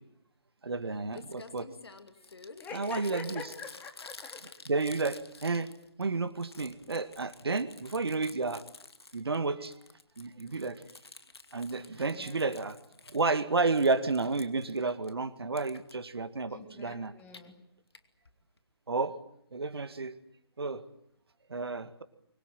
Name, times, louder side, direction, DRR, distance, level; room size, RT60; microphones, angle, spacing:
voice 1, 0.6-1.7 2.7-3.4 4.7-5.7 6.0-8.6 9.1-9.7 10.2-10.8 11.5-12.8 13.1-17.1 18.9-19.1 19.5-20.1 20.6-20.8 21.5-22.0, right 3 dB, 65° right, 12 dB, 2.0 m, -31 dB
Crumpling crinkling, 0.8-0.9 1.1-6.0 6.3-9.4 9.7-13.3 13.6-15.1 15.6-15.9 17.1-17.4 17.9-18.0 18.3-18.4 18.6-18.7, left 3 dB, 70° left, 2.5 m, -50 dB
voice 2, 2.6-4.4 12.0-12.5 16.5-17.5, left 5 dB, 10° left, 3 dB, 3.5 m, -45 dB
25.0 x 22.0 x 9.1 m, 0.73 s
figure-of-eight pair, 140°, 14 cm